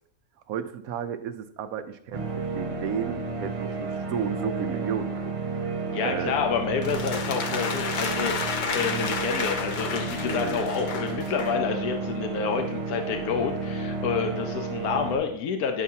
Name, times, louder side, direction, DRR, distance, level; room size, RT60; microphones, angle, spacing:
voice 1, 0.5-5.7 6.0-6.3 10.3-10.7, right 8 dB, 80° right, 10 dB, 1.0 m, -33 dB
sound 1, 2.1-15.2, right 3 dB, 35° right, 0.6 m, -32 dB
voice 2, 5.9-15.8, left 6 dB, 85° left, 5 dB, 1.2 m, -29 dB
S Short applause - alt, 6.8-11.6, left 5 dB, 50° left, 0.6 m, -32 dB
9.4 x 5.8 x 2.7 m, 0.68 s
omnidirectional pair, 1.5 m